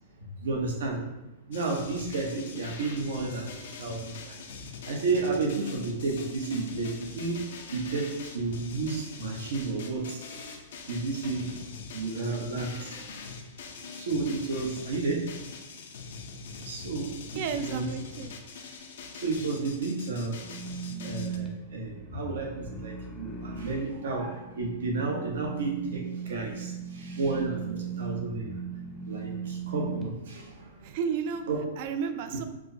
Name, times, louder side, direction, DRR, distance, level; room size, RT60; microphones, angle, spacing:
voice 1, 0.2-1.0 1.5-4.4 4.8-7.4 7.7-10.6 10.9-11.5 11.9-13.0 13.9-15.4 16.6-17.9 19.2-20.4 21.0-28.6 29.1-30.9 31.5-31.6, right 3 dB, 85° right, -1 dB, 0.8 m, -32 dB
sound 1, 1.5-21.4, left 5 dB, 75° left, 0.4 m, -43 dB
voice 2, 17.4-18.4 30.8-31.4 31.8-32.4, right 6 dB, 55° right, 9 dB, 0.3 m, -32 dB
sound 2, 20.4-30.0, right 6 dB, 10° left, 0.5 m, -38 dB
4.6 x 2.0 x 2.6 m, 0.95 s
hypercardioid pair, 140°, 0 cm